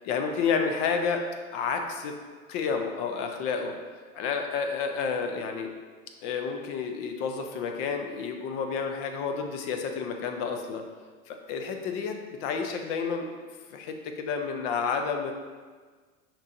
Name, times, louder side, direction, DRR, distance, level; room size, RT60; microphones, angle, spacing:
voice 1, 0.0-1.2 1.5-2.2 2.5-3.7 4.1-5.7 6.2-10.8 11.3-13.3 13.7-15.3, left 5 dB, 45° left, 5 dB, 0.5 m, -30 dB
6.0 x 2.9 x 2.6 m, 1.5 s
hypercardioid pair, 105°, 44 cm